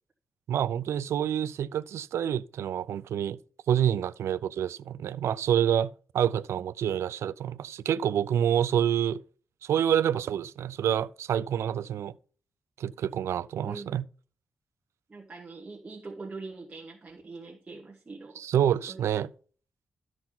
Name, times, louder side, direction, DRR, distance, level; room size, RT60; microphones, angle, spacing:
voice 1, 0.5-3.4 3.7-9.2 9.6-12.1 12.8-14.0 18.4-19.3, right 9 dB, 80° right, 0.4 m, -27 dB
voice 2, 13.6-14.0 15.1-18.4 18.9-19.0, right 3 dB, 25° right, 1.4 m, -43 dB
13.0 x 6.1 x 4.0 m
cardioid pair, 120°, 5 cm